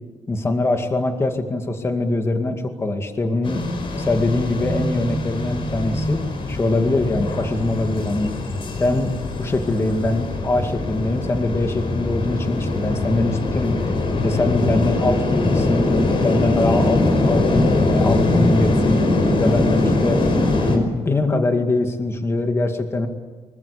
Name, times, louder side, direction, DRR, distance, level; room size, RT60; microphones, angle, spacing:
voice 1, 0.3-3.6 4.0-6.2 6.5-8.3 8.8-9.1 9.4-13.8 14.2-15.9 16.2-19.1 19.3-20.2 20.6-23.1, left 2 dB, 20° left, 5 dB, 2.2 m, -22 dB
sound 1, 3.4-20.8, left 2 dB, 50° left, 5.5 m, -22 dB
25.5 x 23.0 x 8.5 m, 1.4 s
wide cardioid pair, 180°, 11 cm